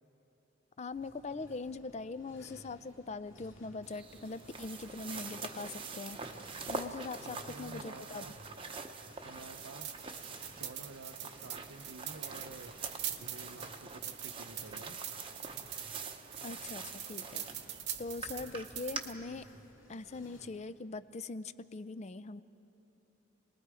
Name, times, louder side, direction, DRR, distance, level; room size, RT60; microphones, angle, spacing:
voice 1, 0.8-6.2 6.7-8.2 16.4-17.5 18.0-19.5 19.9-22.4, left 3 dB, 35° left, 14 dB, 0.4 m, -42 dB
sound 1, 0.9-20.5, equal, 70° left, 2.9 m, -57 dB
sound 2, 3.8-19.0, right 4 dB, 25° right, 0.8 m, -45 dB
voice 2, 7.2-8.3 9.2-10.1 10.5-12.7 13.2-15.0, right 3 dB, 85° right, 7 dB, 0.7 m, -50 dB
sound 3, 9.6-19.1, right 10 dB, 55° right, 1.0 m, -43 dB
29.0 x 20.0 x 4.9 m, 2.9 s
head